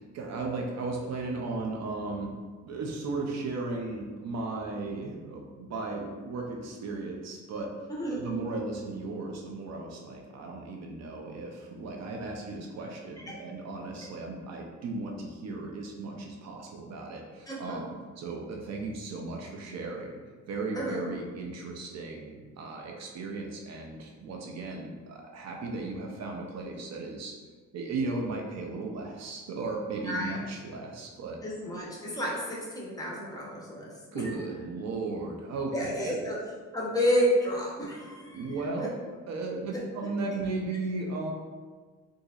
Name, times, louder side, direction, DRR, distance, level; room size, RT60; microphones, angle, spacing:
voice 1, 0.0-2.4 2.6-7.7 8.1-20.1 20.5-27.3 27.7-31.4 34.1-36.2 38.3-41.3, right 3 dB, 60° right, 0 dB, 0.5 m, -36 dB
voice 2, 7.9-8.2 13.2-13.3 14.0-14.1 17.5-17.8 20.7-21.1 30.0-30.4 31.4-33.9 34.2-34.3 35.7-36.4 36.7-38.4 38.8-38.9 39.7-39.8, equal, 10° left, -4 dB, 0.9 m, -30 dB
3.9 x 2.6 x 2.4 m, 1.4 s
cardioid pair, 90°, 30 cm